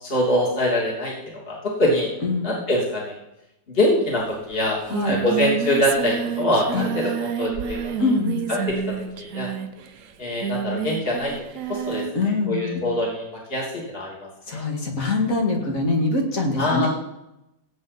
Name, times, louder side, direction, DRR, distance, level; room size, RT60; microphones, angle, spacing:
voice 1, 0.0-1.1 1.5-2.1 2.4-3.1 3.7-4.8 5.0-7.9 8.5-8.6 9.2-9.5 10.2-11.3 11.7-12.0 12.5-14.2 14.5-14.6 16.6-16.9, left 1 dB, 30° left, -3 dB, 3.0 m, -23 dB
voice 2, 2.2-2.6 4.9-5.2 6.7-6.9 8.0-8.4 12.1-12.9 14.5-16.9, left 3 dB, 45° left, 1 dB, 2.3 m, -24 dB
Singing, 4.2-4.3 4.5-12.2, right 8 dB, 60° right, 0.8 m, -29 dB
16.5 x 8.1 x 4.2 m, 0.88 s
omnidirectional pair, 2.0 m